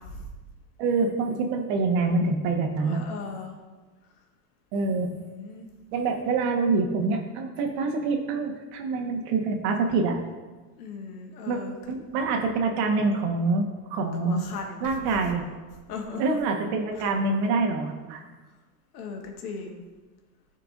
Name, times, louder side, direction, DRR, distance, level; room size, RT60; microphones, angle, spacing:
voice 1, 0.8-3.0 4.7-5.1 5.9-10.2 11.5-11.6 11.9-14.5 14.8-15.4 16.2-18.2, right 3 dB, 55° right, 3 dB, 1.4 m, -26 dB
voice 2, 2.8-3.6 4.9-5.7 10.8-11.7 14.2-15.0 15.9-16.4 17.0-17.1 18.9-19.8, left 4 dB, 75° left, 2 dB, 1.6 m, -38 dB
13.5 x 4.5 x 2.6 m, 1.3 s
hypercardioid pair, 110°, 46 cm